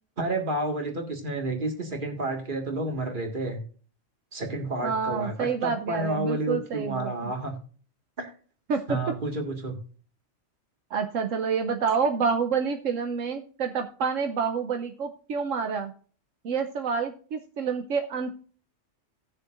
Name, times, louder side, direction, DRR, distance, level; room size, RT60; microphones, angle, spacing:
voice 1, 0.2-3.6 4.3-7.5 8.2-8.3 8.9-9.8, right 2 dB, 40° right, 3 dB, 1.9 m, -30 dB
voice 2, 4.8-7.3 8.7-9.0 10.9-15.9 16.4-18.3, right 5 dB, 80° right, 6 dB, 1.1 m, -28 dB
18.0 x 6.6 x 2.5 m, 0.41 s
omnidirectional pair, 1.3 m